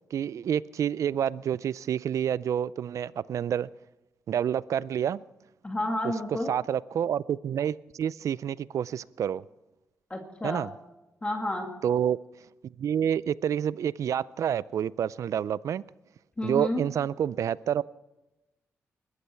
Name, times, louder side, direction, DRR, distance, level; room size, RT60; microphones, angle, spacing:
voice 1, 0.1-3.7 4.3-5.2 6.5-9.4 10.4-10.7 11.8-12.2 12.8-15.8 16.4-17.8, right 9 dB, 75° right, 0.4 m, -28 dB
voice 2, 5.6-6.5 10.1-10.7 11.2-11.7 16.4-16.8, left 1 dB, 20° left, 2.2 m, -30 dB
20.5 x 13.5 x 4.5 m
cardioid pair, 75°, 5 cm